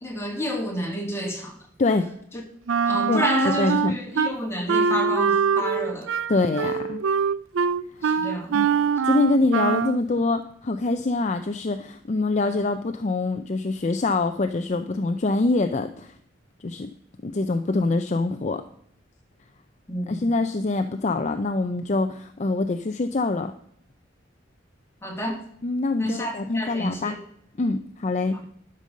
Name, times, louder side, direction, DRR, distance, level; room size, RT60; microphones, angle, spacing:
voice 1, 0.0-1.5 2.8-6.1 8.0-8.5 19.9-20.2 25.0-25.4 26.0-27.2, equal, 15° left, 0 dB, 2.1 m, -29 dB
voice 2, 1.8-2.1 3.1-4.0 6.3-7.0 8.0-8.2 8.5-16.1 16.6-16.9 17.2-18.6 20.0-23.5 25.6-27.2 27.6-28.4, left 3 dB, 35° left, 8 dB, 0.5 m, -25 dB
Wind instrument woodwind instrument, 2.7-4.3 4.7-10.0, right 6 dB, 85° right, 0.4 m, -23 dB
11.5 x 5.4 x 6.3 m, 0.67 s
head